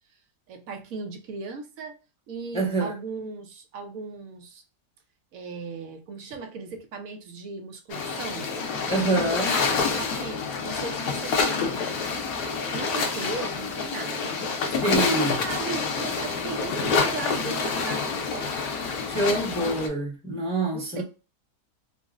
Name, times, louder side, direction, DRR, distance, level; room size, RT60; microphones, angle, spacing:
voice 1, 0.5-2.0 2.3-4.6 5.3-8.5 8.9-11.9 12.2-12.3 12.7-14.5 15.1-18.5 20.7-21.0, right 4 dB, 65° right, 1.0 m, -37 dB
voice 2, 2.5-2.9 8.9-9.6 14.8-15.4 19.1-21.0, right 2 dB, 5° left, 0.7 m, -26 dB
sound 1, 7.9-19.9, left 5 dB, 70° left, 1.1 m, -27 dB
3.8 x 2.0 x 2.3 m
omnidirectional pair, 1.8 m